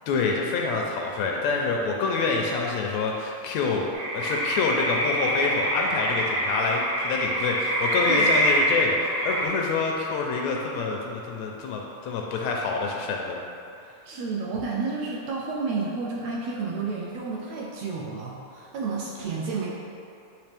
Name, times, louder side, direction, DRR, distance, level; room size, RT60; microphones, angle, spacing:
voice 1, 0.1-13.4, left 4 dB, 80° left, 0 dB, 1.7 m, -27 dB
sound 1, 3.9-9.5, equal, 55° right, 1.5 m, -25 dB
voice 2, 8.1-8.4 14.0-19.7, right 4 dB, 80° right, -4 dB, 1.6 m, -31 dB
8.9 x 3.1 x 3.4 m, 2.6 s
omnidirectional pair, 3.3 m